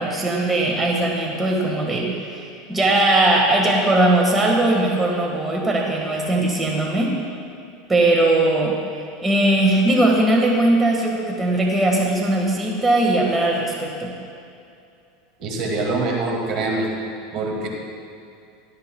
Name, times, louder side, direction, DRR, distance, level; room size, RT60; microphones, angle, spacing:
voice 1, 0.0-7.1 7.9-8.8 9.2-14.1, right 2 dB, 15° right, -1 dB, 1.6 m, -19 dB
voice 2, 15.4-16.9 17.3-17.7, right 2 dB, 50° right, 0 dB, 2.1 m, -24 dB
17.0 x 12.0 x 2.3 m, 2.5 s
supercardioid pair, 120°, 0 cm